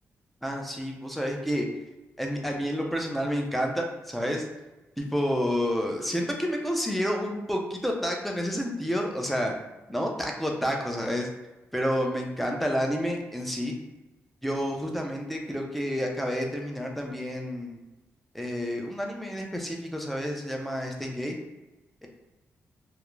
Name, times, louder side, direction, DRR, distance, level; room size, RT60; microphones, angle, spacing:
voice 1, 0.4-1.7 2.2-4.5 5.0-9.5 9.9-11.3 11.7-13.7 14.4-17.8 18.3-21.3 22.0-22.1, equal, ahead, 1 dB, 0.5 m, -29 dB
2.4 x 2.1 x 3.0 m, 1.1 s
cardioid pair, 95°, 5 cm